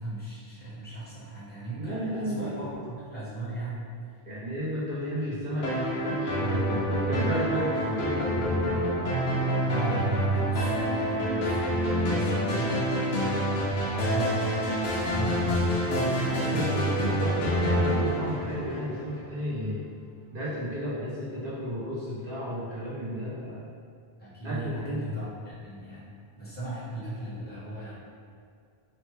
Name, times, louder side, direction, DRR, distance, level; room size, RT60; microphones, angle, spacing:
voice 1, 0.0-3.9 9.6-13.4 13.9-14.5 15.0-16.8 24.2-26.1 26.4-27.9, right 2 dB, 10° left, -10 dB, 0.8 m, -36 dB
voice 2, 1.8-2.7 4.3-8.8 16.2-19.9 20.3-23.7 24.4-25.1, equal, 60° right, -9 dB, 0.9 m, -33 dB
sound 1, 5.6-19.2, equal, 75° left, 0.9 m, -27 dB
3.1 x 2.1 x 3.1 m, 2.3 s
omnidirectional pair, 1.0 m